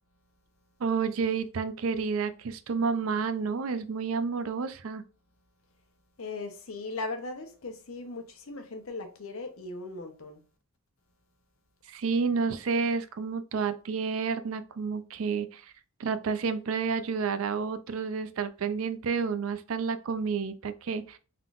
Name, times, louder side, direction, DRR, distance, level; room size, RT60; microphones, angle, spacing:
voice 1, 0.8-5.0 11.9-15.7 16.0-21.2, right 5 dB, 70° right, 0.4 m, -30 dB
voice 2, 6.2-10.4, left 3 dB, 75° left, 0.9 m, -38 dB
3.8 x 3.7 x 2.4 m
head